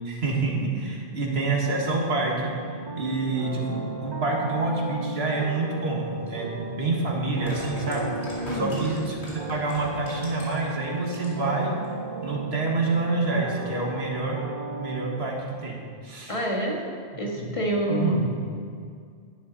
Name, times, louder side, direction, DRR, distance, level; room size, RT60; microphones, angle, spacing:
voice 1, 0.1-2.5 3.0-9.2 9.5-11.7 12.2-14.4 14.8-15.4 15.6-15.8 16.0-16.4 17.4-17.6 17.9-18.2, right 3 dB, 75° right, -1 dB, 1.9 m, -27 dB
sound 1, 1.6-15.2, right 2 dB, 55° right, 1.1 m, -36 dB
sound 2, 6.3-6.4 7.2-10.7 11.0-11.5 11.8-11.9, left 1 dB, 75° left, 2.8 m, -40 dB
voice 2, 8.4-8.9 16.3-16.8 17.2-18.3, right 1 dB, 30° left, -1 dB, 1.6 m, -27 dB
11.0 x 10.5 x 4.0 m, 2.2 s
omnidirectional pair, 1.1 m